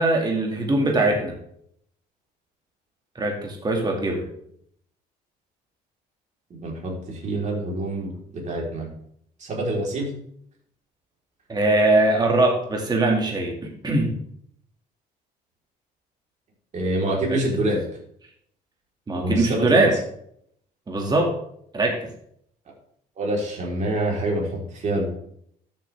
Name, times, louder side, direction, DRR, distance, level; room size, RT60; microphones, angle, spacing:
voice 1, 0.0-1.3 3.2-4.2 11.5-14.1 17.3-17.4 19.1-19.9 20.9-21.3 21.7-22.0, right 2 dB, 25° right, 1 dB, 2.2 m, -21 dB
voice 2, 6.5-8.9 9.4-10.1 16.7-17.8 19.2-19.9 23.2-25.1, right 1 dB, 45° right, -2 dB, 4.0 m, -26 dB
13.0 x 7.3 x 3.5 m, 0.69 s
cardioid pair, 110°, 17 cm